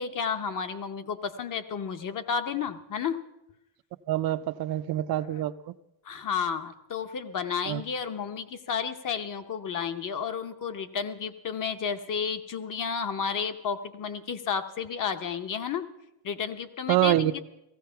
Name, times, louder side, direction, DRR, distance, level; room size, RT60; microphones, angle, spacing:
voice 1, 0.0-3.2 5.3-5.4 6.0-15.9 16.2-17.4, left 6 dB, 40° left, 8 dB, 0.9 m, -32 dB
voice 2, 4.1-5.7 7.7-7.8 16.9-17.3, right 13 dB, 50° right, 13 dB, 0.6 m, -26 dB
16.5 x 15.0 x 5.7 m, 0.88 s
cardioid pair, 150°, 48 cm